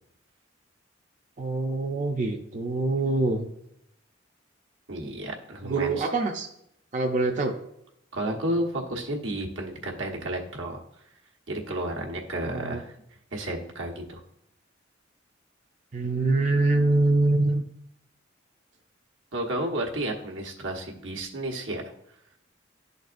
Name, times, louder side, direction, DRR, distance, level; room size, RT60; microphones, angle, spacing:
voice 1, 1.4-3.5 5.6-6.5 6.9-7.5 12.4-12.8 15.9-17.6, right 2 dB, 40° right, 2 dB, 0.5 m, -24 dB
voice 2, 4.9-6.1 8.1-10.8 11.5-12.9 13.3-14.2 19.3-21.9, right 1 dB, 85° right, 0 dB, 1.2 m, -32 dB
11.5 x 4.0 x 2.5 m, 0.77 s
head